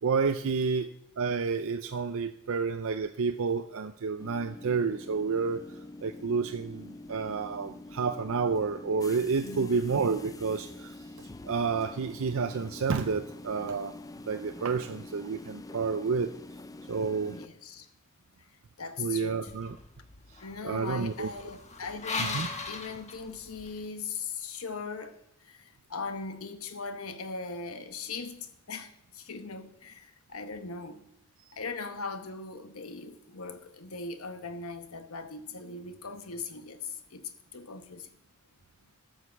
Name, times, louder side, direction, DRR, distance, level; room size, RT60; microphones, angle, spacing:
voice 1, 0.0-5.6 6.0-10.9 11.4-13.9 14.2-16.3 16.9-17.4 19.0-19.8 20.6-21.3 22.2-22.5, right 5 dB, 65° right, 0.5 m, -30 dB
sound 1, 4.2-17.5, left 2 dB, 15° left, 0.4 m, -46 dB
voice 2, 9.4-9.9 17.3-17.9 18.8-19.5 20.4-31.0 31.5-38.1, left 4 dB, 75° left, 1.1 m, -40 dB
sound 2, 19.5-23.8, left 3 dB, 30° left, 1.3 m, -39 dB
12.5 x 6.5 x 7.0 m
head